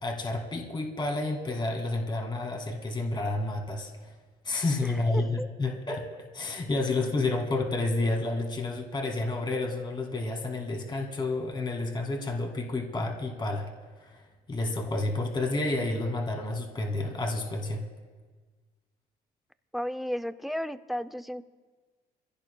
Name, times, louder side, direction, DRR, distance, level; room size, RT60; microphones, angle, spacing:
voice 1, 0.0-4.1 4.4-6.1 6.3-13.7 14.0-14.2 14.5-17.8, left 2 dB, 25° left, 2 dB, 2.2 m, -30 dB
voice 2, 4.8-5.5 19.7-21.4, equal, ahead, 12 dB, 0.5 m, -34 dB
25.5 x 16.5 x 2.3 m, 1.4 s
cardioid pair, 110°, 17 cm